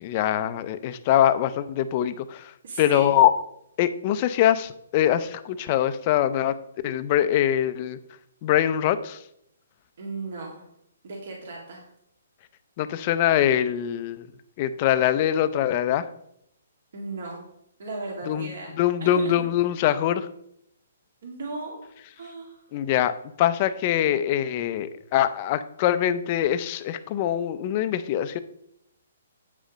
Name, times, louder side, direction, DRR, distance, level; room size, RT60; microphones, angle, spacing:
voice 1, 0.0-2.5 2.8-3.3 3.8-6.6 6.8-8.0 8.4-9.2 12.8-14.2 14.6-16.0 18.3-18.5 18.8-20.3 22.7-23.1 23.4-28.4, left 11 dB, 25° left, 12 dB, 0.4 m, -23 dB
voice 2, 2.6-3.1 10.0-10.7 11.0-11.9 16.9-17.5 17.8-18.7 19.0-19.3 21.2-21.8 22.1-22.6, right 3 dB, 55° right, -2 dB, 2.0 m, -36 dB
8.4 x 5.2 x 5.0 m, 0.76 s
hypercardioid pair, 170°, 0 cm